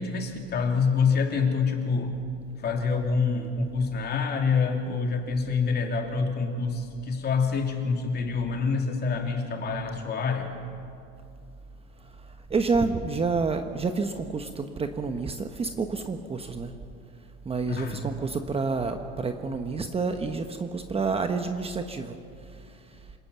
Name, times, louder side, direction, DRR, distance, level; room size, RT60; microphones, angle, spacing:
voice 1, 0.0-2.2 2.6-10.5 17.7-18.0, left 5 dB, 35° left, 3 dB, 3.3 m, -26 dB
voice 2, 12.0-16.7 17.4-23.1, right 4 dB, 20° right, 6 dB, 1.1 m, -29 dB
27.5 x 18.5 x 7.0 m, 2.5 s
supercardioid pair, 125°, 30 cm